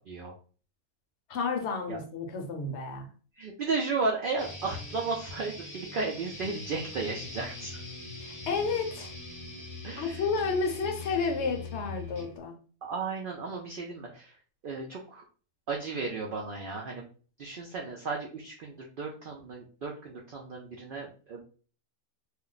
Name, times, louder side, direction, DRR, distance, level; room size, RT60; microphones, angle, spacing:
voice 1, 1.3-3.1 8.2-9.1 10.0-12.5, left 4 dB, 60° left, 4 dB, 0.8 m, -31 dB
voice 2, 3.4-7.8 9.8-10.2 12.8-14.3 14.6-15.2 15.7-17.1 17.4-21.4, right 4 dB, 75° right, 0 dB, 0.4 m, -34 dB
sound 1, 4.4-12.4, left 2 dB, 20° left, 0.6 m, -42 dB
2.4 x 2.1 x 3.8 m, 0.40 s
omnidirectional pair, 1.5 m